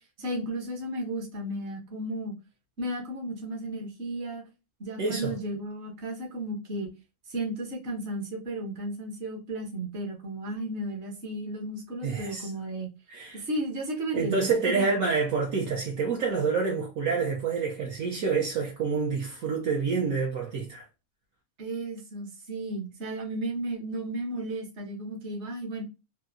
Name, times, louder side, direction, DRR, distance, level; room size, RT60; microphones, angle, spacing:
voice 1, 0.2-2.3 2.8-4.4 4.8-6.9 7.3-12.9 13.3-14.9 21.6-25.8, right 1 dB, 55° right, 1.2 m, -34 dB
voice 2, 5.0-5.3 12.0-12.5 13.1-13.4 14.1-20.9, right 5 dB, 70° right, 1.1 m, -28 dB
3.4 x 2.7 x 2.6 m
omnidirectional pair, 1.5 m